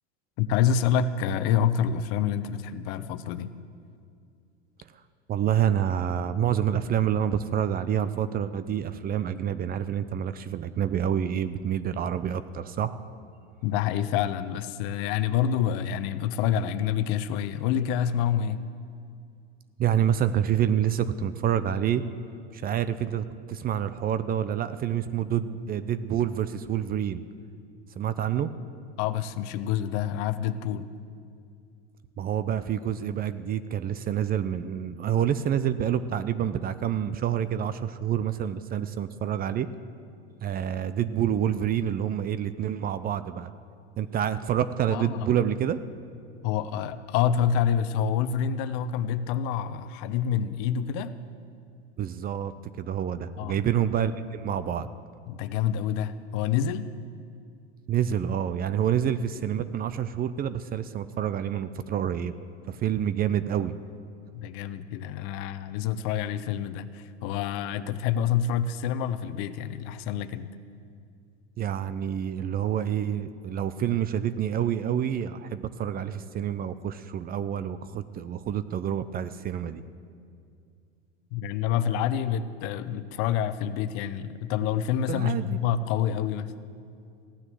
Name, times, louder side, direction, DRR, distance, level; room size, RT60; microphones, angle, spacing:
voice 1, 0.4-3.5 13.6-18.6 28.2-28.3 29.0-30.9 44.9-45.3 46.4-51.1 53.4-53.6 55.3-56.9 64.3-70.5 81.3-86.5, left 9 dB, 50° left, 12 dB, 0.9 m, -27 dB
voice 2, 5.3-13.0 19.8-22.0 22.5-27.2 28.0-28.5 32.2-39.7 40.4-43.5 44.0-45.8 52.0-54.9 57.9-62.3 62.7-63.7 71.6-79.8 85.1-85.6, right 9 dB, 25° right, 13 dB, 0.5 m, -27 dB
16.0 x 9.7 x 7.7 m, 2.4 s
hypercardioid pair, 95°, 34 cm